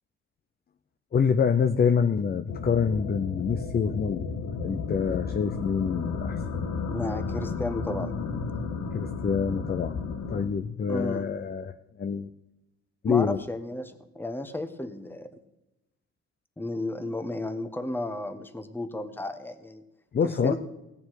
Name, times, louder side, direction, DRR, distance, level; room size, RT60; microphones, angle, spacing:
voice 1, 1.1-4.3 4.6-6.4 8.9-10.0 10.3-11.7 12.0-12.3 13.0-13.4 20.1-20.5, left 6 dB, 30° left, 9 dB, 0.6 m, -26 dB
sound 1, 2.5-10.5, left 5 dB, 75° left, 1.6 m, -33 dB
voice 2, 6.9-8.1 10.9-11.3 13.1-15.3 16.6-19.8 20.2-20.5, left 2 dB, 5° left, 9 dB, 1.0 m, -33 dB
17.5 x 7.1 x 4.7 m, 0.95 s
cardioid pair, 90°, 30 cm